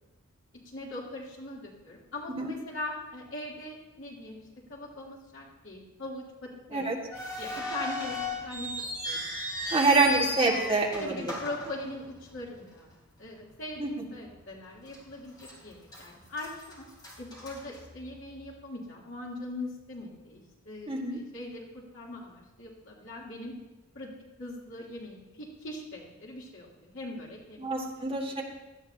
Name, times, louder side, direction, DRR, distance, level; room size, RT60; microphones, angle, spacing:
voice 1, 0.5-4.4 4.7-6.9 7.4-8.7 9.0-9.2 10.0-10.2 11.0-12.9 13.2-16.9 17.2-23.5 23.9-24.1 24.4-27.7 28.0-28.1, left 2 dB, 65° left, -4 dB, 3.2 m, -41 dB
sound 1, 7.1-12.4 12.7-12.8 13.6-13.8 14.2-14.3 14.9-15.5 15.9-18.3, left 1 dB, 20° left, 3.3 m, -36 dB
voice 2, 9.7-11.1 13.8-13.9 20.9-21.2 27.6-28.4, right 3 dB, 25° right, -1 dB, 1.8 m, -26 dB
17.5 x 12.5 x 2.8 m, 1.0 s
head